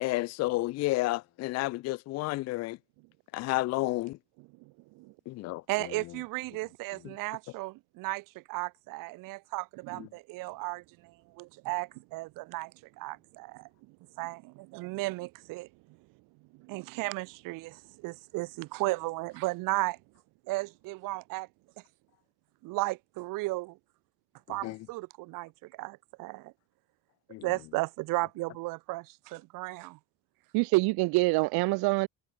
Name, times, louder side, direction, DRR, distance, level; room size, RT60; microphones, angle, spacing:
voice 1, 0.0-2.8 3.3-4.2 5.3-5.6 24.6-24.8 27.3-27.4, left 19 dB, 45° left, 0.5 m, -30 dB
voice 2, 5.7-12.7 13.0-13.6 14.2-15.7 16.7-20.0 20.5-21.5 22.6-23.8 24.5-25.5 25.8-26.5 27.4-30.0, right 22 dB, 60° right, 0.7 m, -35 dB
voice 3, 30.5-32.1, right 25 dB, 85° right, 1.4 m, -26 dB
cardioid pair, 165°, 37 cm